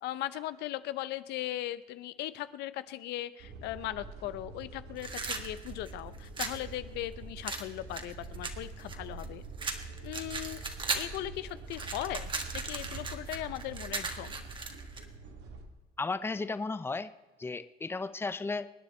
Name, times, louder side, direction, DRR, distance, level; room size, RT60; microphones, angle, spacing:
voice 1, 0.0-9.4 10.0-10.6 10.9-14.4, left 14 dB, 85° left, 14 dB, 0.7 m, -38 dB
sound 1, 3.4-15.7, right 3 dB, 75° right, 2.3 m, -45 dB
sound 2, 5.0-6.6 7.5-9.3 9.6-11.2 11.5-15.0, right 4 dB, 30° right, 1.7 m, -37 dB
voice 2, 16.0-17.1 17.4-18.7, left 3 dB, 15° left, 13 dB, 0.6 m, -34 dB
24.5 x 9.5 x 4.4 m, 1.2 s
cardioid pair, 110°, 17 cm